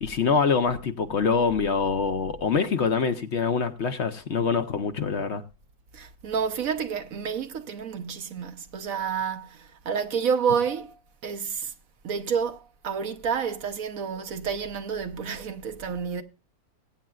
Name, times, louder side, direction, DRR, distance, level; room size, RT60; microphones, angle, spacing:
voice 1, 0.0-5.4, left 5 dB, 55° left, 1.0 m, -25 dB
voice 2, 5.9-10.9 11.2-11.7 12.0-16.2, right 6 dB, 65° right, 1.3 m, -29 dB
22.5 x 8.9 x 2.4 m
omnidirectional pair, 1.6 m